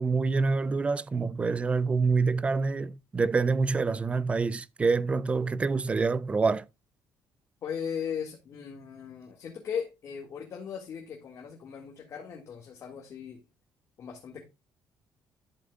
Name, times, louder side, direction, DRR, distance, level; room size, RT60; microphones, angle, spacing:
voice 1, 0.0-6.7, right 4 dB, 20° right, 0.4 m, -26 dB
voice 2, 7.6-13.4 14.0-14.4, left 7 dB, 45° left, 1.9 m, -38 dB
12.0 x 7.3 x 2.3 m
cardioid pair, 170°, 7 cm